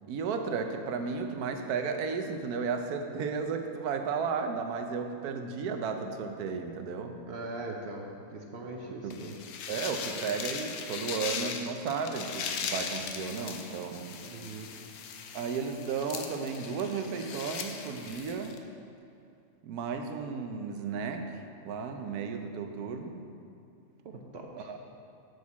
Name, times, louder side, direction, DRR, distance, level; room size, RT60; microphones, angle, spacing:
voice 1, 0.0-7.2 9.0-9.2 9.7-14.2 15.3-18.6 19.6-21.3 21.6-23.3 24.6-24.8, right 5 dB, 85° right, 5 dB, 1.2 m, -34 dB
voice 2, 7.3-8.0 8.3-9.3 14.2-14.7 24.0-24.7, right 2 dB, 55° right, 0 dB, 0.9 m, -41 dB
sound 1, 9.1-18.6, left 6 dB, 85° left, 1.1 m, -39 dB
8.3 x 6.3 x 4.2 m, 2.5 s
omnidirectional pair, 1.6 m